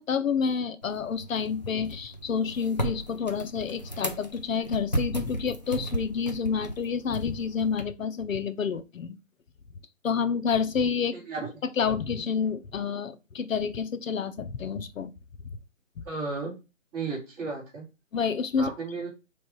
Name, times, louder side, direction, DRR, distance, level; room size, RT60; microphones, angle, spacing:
voice 1, 0.0-9.2 10.0-11.2 11.8-15.1 16.0-16.1 18.1-18.7, left 6 dB, 80° left, 0.7 m, -29 dB
sound 1, 0.8-7.8, right 1 dB, 35° left, 0.4 m, -35 dB
voice 2, 11.1-11.6 16.0-16.5 16.9-17.8 18.6-19.1, right 4 dB, 10° right, 1.7 m, -34 dB
3.2 x 3.0 x 4.4 m
hypercardioid pair, 170°, 39 cm